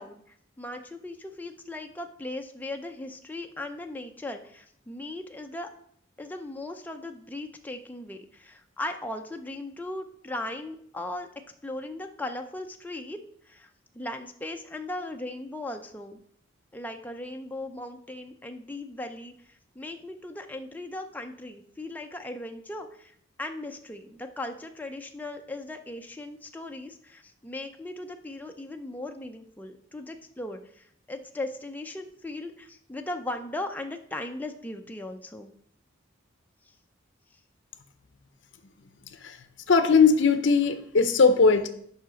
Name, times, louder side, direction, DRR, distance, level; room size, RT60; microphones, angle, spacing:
voice 1, 0.0-5.7 6.2-11.3 11.6-16.2 16.7-35.5 36.7-36.8, left 2 dB, 10° left, 4 dB, 0.4 m, -38 dB
voice 2, 39.7-41.7, left 4 dB, 60° left, 9 dB, 0.6 m, -19 dB
7.5 x 5.7 x 5.0 m, 0.66 s
head